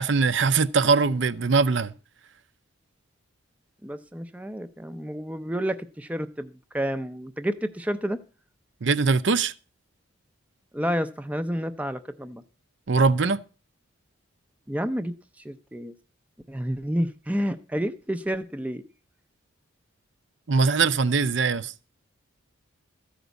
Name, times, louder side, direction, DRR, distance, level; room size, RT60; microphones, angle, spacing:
voice 1, 0.0-1.9 8.8-9.5 12.9-13.4 20.5-21.7, right 4 dB, 55° right, 0.6 m, -21 dB
voice 2, 3.8-8.2 10.7-12.4 14.7-15.9 16.5-18.8, equal, 5° right, 0.5 m, -30 dB
13.5 x 5.1 x 8.1 m
head